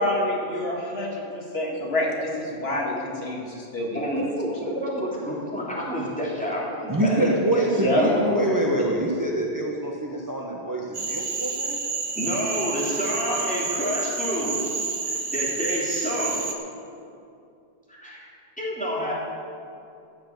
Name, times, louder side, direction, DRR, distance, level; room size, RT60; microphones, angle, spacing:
voice 1, 0.0-4.2 7.8-8.1, left 1 dB, 70° left, -1 dB, 2.2 m, -27 dB
voice 2, 3.9-8.6 12.2-14.6 15.0-16.4 17.9-18.3 18.6-19.1, equal, 5° left, -6 dB, 3.3 m, -29 dB
voice 3, 6.9-11.8, right 1 dB, 20° right, -1 dB, 1.2 m, -25 dB
Cricket / Frog, 10.9-16.5, right 4 dB, 65° right, 1.4 m, -29 dB
14.5 x 7.0 x 7.9 m, 2.5 s
omnidirectional pair, 1.1 m